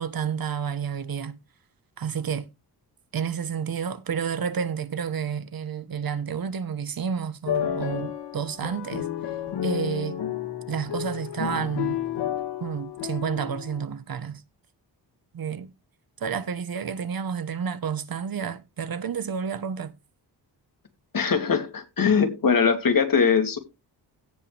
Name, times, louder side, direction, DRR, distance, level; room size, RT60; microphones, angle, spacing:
voice 1, 0.0-1.4 2.0-2.5 3.1-9.1 9.6-10.2 10.7-12.0 12.6-14.4 15.3-15.7 16.2-20.0, right 7 dB, 55° right, 1.2 m, -30 dB
sound 1, 7.5-13.8, left 10 dB, 80° left, 1.5 m, -31 dB
voice 2, 21.1-23.6, left 6 dB, 55° left, 2.9 m, -21 dB
16.5 x 5.7 x 3.4 m
cardioid pair, 95°, 41 cm